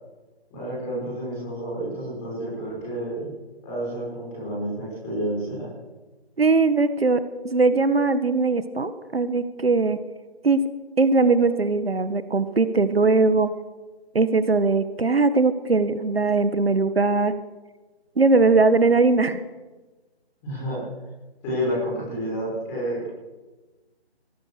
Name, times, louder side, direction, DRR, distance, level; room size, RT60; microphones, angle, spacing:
voice 1, 0.5-3.3 3.6-5.7 20.4-20.8 21.4-23.1, equal, 10° left, -7 dB, 6.3 m, -30 dB
voice 2, 6.4-10.0 10.4-10.6 11.0-13.5 14.1-17.3 18.2-19.4, right 3 dB, 65° right, 11 dB, 1.6 m, -20 dB
24.5 x 17.5 x 6.7 m, 1.2 s
figure-of-eight pair, 175°, 32 cm